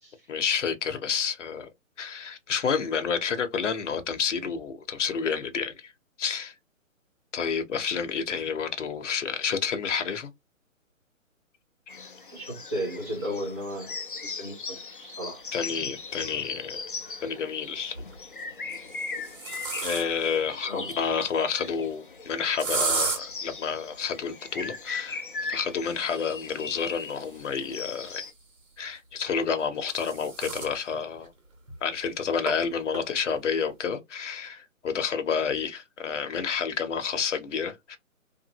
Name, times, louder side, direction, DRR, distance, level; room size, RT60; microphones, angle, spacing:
voice 1, 0.3-1.7 2.0-5.9 6.2-6.5 7.3-10.3 15.5-16.8 17.2-18.0 19.8-25.2 25.5-28.2 28.8-31.3 31.8-38.0, left 6 dB, 60° left, 0.8 m, -29 dB
sound 1, 11.9-28.3, left 4 dB, 40° left, 0.4 m, -39 dB
voice 2, 12.3-13.9 14.2-15.4 20.5-21.0, equal, 10° right, 0.6 m, -35 dB
sound 2, 16.2-16.3 17.8-18.2 18.8-20.4 22.6-23.2 25.8-28.4 29.4-30.8 31.2-31.3 31.7-31.8 32.5-32.6 32.9-33.3, right 4 dB, 65° right, 1.8 m, -34 dB
2.9 x 2.5 x 2.7 m
hypercardioid pair, 160°, 41 cm